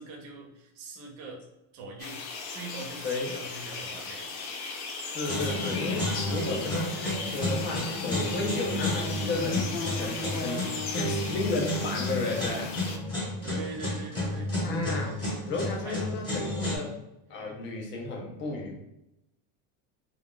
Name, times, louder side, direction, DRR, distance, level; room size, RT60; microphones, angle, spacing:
voice 1, 0.0-1.4 1.7-2.2 2.5-4.3 13.4-14.5 15.1-15.2 15.8-16.1 16.5-16.9, right 3 dB, 45° right, 1 dB, 0.7 m, -42 dB
sound 1, 2.0-13.0, left 4 dB, 85° left, 0.8 m, -36 dB
voice 2, 3.0-3.3 5.0-9.7 9.9-12.7 14.6-15.1 15.5-16.9 17.3-18.8, left 2 dB, 25° left, 0 dB, 0.5 m, -33 dB
sound 2, 5.3-16.8, left 1 dB, 10° left, 1.0 m, -32 dB
2.3 x 2.3 x 3.6 m, 0.88 s
cardioid pair, 170°, 43 cm